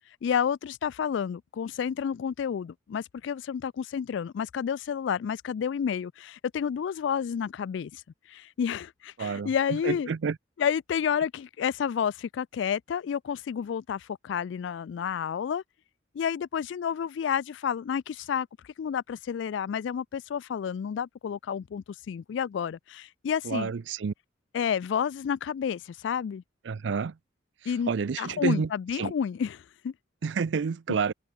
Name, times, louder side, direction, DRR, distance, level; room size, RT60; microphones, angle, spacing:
voice 1, 0.2-8.0 8.3-10.1 10.6-15.6 16.1-18.5 18.8-23.7 24.5-26.4 27.7-27.9 28.2-29.9, left 7 dB, 70° left, 0.3 m, -30 dB
voice 2, 9.2-9.5 9.8-10.4 23.5-24.1 26.7-27.1 27.9-28.7 29.0-29.1 30.2-31.1, right 5 dB, 70° right, 0.4 m, -29 dB
head